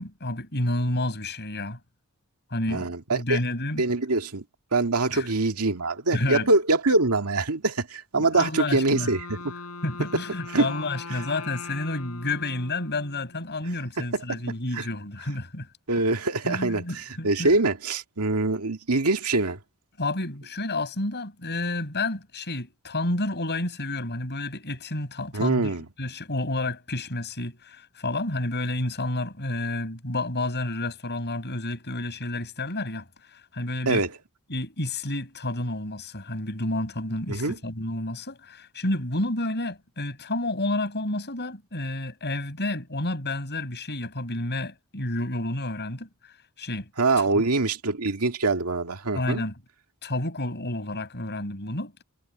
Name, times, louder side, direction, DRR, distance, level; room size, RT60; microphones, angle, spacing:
voice 1, 0.0-1.8 2.5-3.8 5.1-5.3 6.1-6.5 8.2-9.1 9.8-15.7 16.4-17.5 20.0-25.7 26.0-34.0 34.5-46.1 46.6-46.9 47.2-47.4 49.1-49.5 50.0-51.9, left 2 dB, 50° left, 7.8 m, -30 dB
voice 2, 2.7-3.4 3.8-4.4 4.7-9.4 10.5-10.7 14.1-14.4 14.7-14.9 15.9-19.6 25.3-25.9 33.9-34.1 37.3-37.6 47.0-49.4, right 3 dB, 80° right, 2.0 m, -24 dB
Wind instrument woodwind instrument, 8.7-13.6, left 3 dB, 85° left, 4.7 m, -41 dB
head